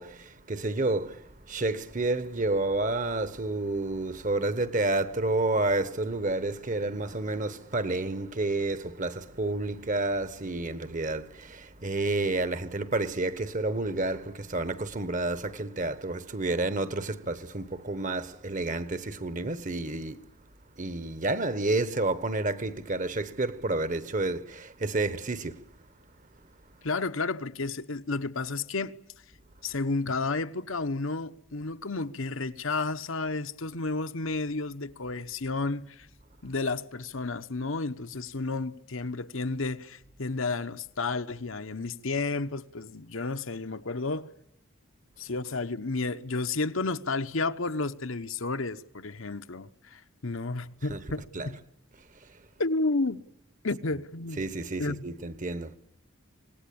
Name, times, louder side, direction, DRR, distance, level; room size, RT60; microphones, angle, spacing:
voice 1, 0.0-20.2 20.8-25.7 50.9-51.0 51.3-51.5 52.2-52.3 54.4-55.8, right 2 dB, 35° right, 1.3 m, -30 dB
voice 2, 26.8-29.0 29.6-36.1 36.4-44.3 45.2-51.6 52.6-53.2 53.6-54.4 54.8-55.0, left 3 dB, 65° left, 1.1 m, -31 dB
25.5 x 19.5 x 8.7 m
head